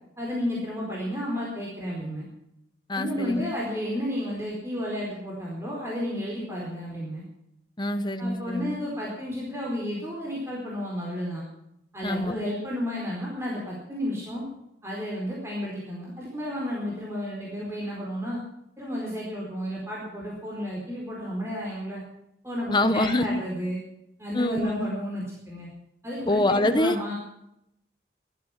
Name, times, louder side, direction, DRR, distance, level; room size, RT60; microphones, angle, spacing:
voice 1, 0.2-2.2 2.9-7.2 8.2-11.4 11.9-14.4 14.8-18.4 18.8-22.0 22.4-23.8 24.2-25.7 26.0-27.1, equal, 15° right, -4 dB, 4.4 m, -32 dB
voice 2, 2.9-3.4 7.8-8.8 12.0-12.3 22.7-23.4 24.3-24.9 26.3-26.9, left 1 dB, 25° left, 9 dB, 1.1 m, -25 dB
18.5 x 12.5 x 6.0 m, 0.80 s
head